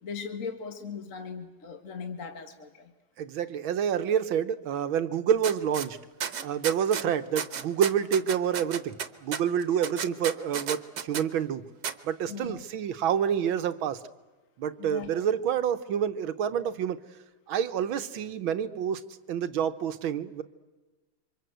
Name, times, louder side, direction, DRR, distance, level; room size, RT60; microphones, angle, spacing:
voice 1, 0.0-2.9 12.3-12.6 14.8-15.1, left 5 dB, 40° left, 6 dB, 1.9 m, -38 dB
voice 2, 3.2-6.0 6.4-11.6 12.0-14.0 14.6-17.0 17.5-19.0 19.3-20.4, right 8 dB, 75° right, 11 dB, 1.8 m, -28 dB
sound 1, 5.4-5.9 6.2-7.1 7.4-11.2 11.8-11.9, right 8 dB, 60° right, 1.7 m, -33 dB
28.0 x 25.0 x 8.0 m, 1.2 s
omnidirectional pair, 2.2 m